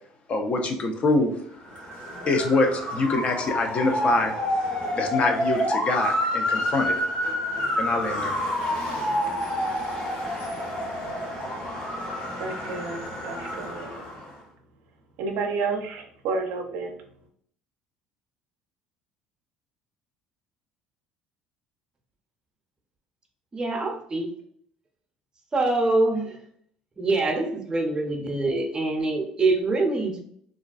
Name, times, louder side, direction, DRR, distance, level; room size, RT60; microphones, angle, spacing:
voice 1, 0.3-1.3 2.3-4.3 4.9-7.0 7.8-8.3, left 3 dB, 40° left, 3 dB, 0.5 m, -24 dB
Motor vehicle (road) / Siren, 1.6-14.3, equal, 60° left, 1.2 m, -28 dB
voice 2, 12.4-13.9 15.2-17.0, right 4 dB, 75° right, 3 dB, 0.5 m, -30 dB
voice 3, 23.5-24.3 25.5-26.4 27.0-30.2, right 2 dB, 25° right, 3 dB, 0.6 m, -24 dB
2.4 x 2.2 x 2.4 m, 0.64 s
hypercardioid pair, 70°, 3 cm